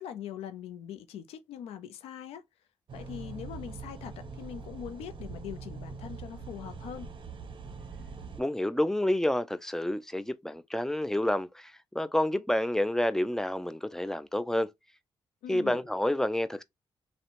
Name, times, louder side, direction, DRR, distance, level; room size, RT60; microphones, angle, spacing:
voice 1, 0.0-2.4 2.9-7.1 15.4-15.8, left 9 dB, 90° left, 0.4 m, -42 dB
sound 1, 2.9-8.4, right 4 dB, 55° right, 0.6 m, -43 dB
voice 2, 8.4-14.7 15.5-16.6, left 1 dB, 5° left, 0.3 m, -29 dB
2.8 x 2.1 x 2.5 m
cardioid pair, 60°, 10 cm